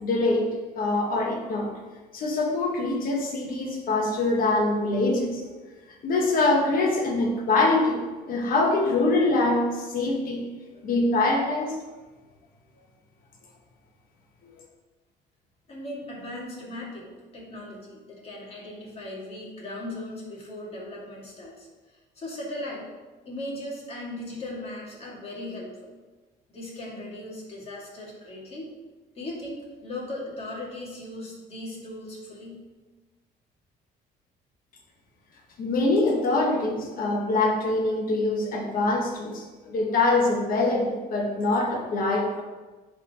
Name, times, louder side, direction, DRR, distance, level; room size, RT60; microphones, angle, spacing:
voice 1, 0.0-1.7 2.1-5.4 6.0-10.5 10.8-11.8 35.6-42.4, left 2 dB, 55° left, 0 dB, 1.4 m, -24 dB
voice 2, 15.7-22.9 23.2-25.9 26.5-28.7 29.2-32.6, left 1 dB, 35° left, -4 dB, 2.2 m, -38 dB
10.5 x 3.9 x 3.0 m, 1.2 s
cardioid pair, 110°, 17 cm